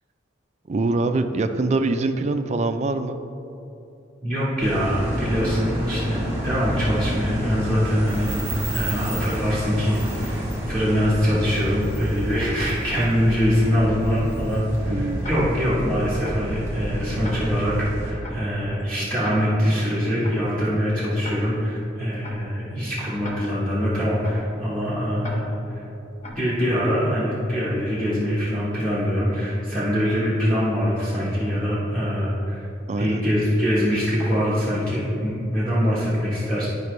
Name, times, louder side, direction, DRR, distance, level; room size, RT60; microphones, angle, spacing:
voice 1, 0.7-3.2 8.9-9.1 14.9-15.3 32.9-33.2, right 3 dB, 35° right, 8 dB, 0.3 m, -24 dB
voice 2, 4.2-25.4 25.7-25.8 26.3-32.6 33.0-36.7, equal, 5° left, -10 dB, 1.1 m, -23 dB
sound 1, 4.6-18.1, right 1 dB, 15° right, 1.4 m, -29 dB
Tick-tock, 15.2-15.7 16.2-16.6 17.2-17.7 18.2-18.6 19.2-19.7 20.2-20.6 21.2-21.7 22.2-22.6 23.2-23.7 24.2-24.6 25.2-25.7 26.2-26.6, left 1 dB, 35° left, 0.9 m, -39 dB
11.0 x 5.0 x 3.2 m, 3.0 s
head